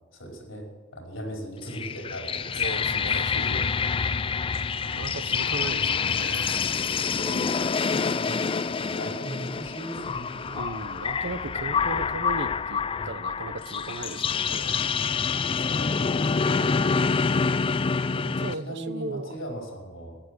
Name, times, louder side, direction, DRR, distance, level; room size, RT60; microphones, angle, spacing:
voice 1, 0.1-2.8 3.1-3.6 4.8-5.1 7.8-10.6 12.9-13.1 15.5-16.5 18.1-18.3 18.5-20.2, right 1 dB, 70° left, 0 dB, 5.0 m, -39 dB
sound 1, 1.6-18.5, left 5 dB, 25° left, 0.4 m, -27 dB
voice 2, 2.6-3.6 4.8-6.6 6.9-8.0 10.5-14.8 16.4-16.9 18.1-19.4, right 3 dB, 60° right, 13 dB, 0.8 m, -37 dB
14.5 x 10.5 x 6.2 m, 1.3 s
head